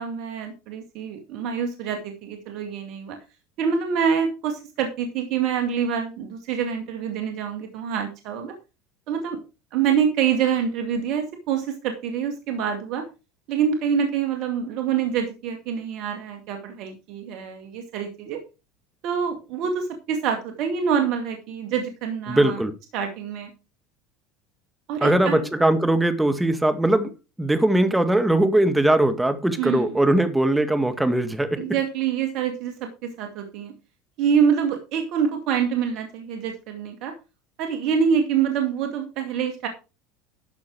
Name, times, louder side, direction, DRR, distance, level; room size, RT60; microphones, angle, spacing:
voice 1, 0.0-3.2 3.6-8.5 9.1-9.4 9.7-13.0 13.5-18.4 19.0-22.6 22.9-23.5 24.9-25.4 29.6-29.9 31.6-33.7 34.2-37.1 37.6-39.7, right 7 dB, 60° right, 2.1 m, -26 dB
voice 2, 22.3-22.7 25.0-27.1 27.4-31.6, right 1 dB, 5° right, 2.0 m, -20 dB
12.5 x 6.6 x 4.8 m
hypercardioid pair, 80°, 0 cm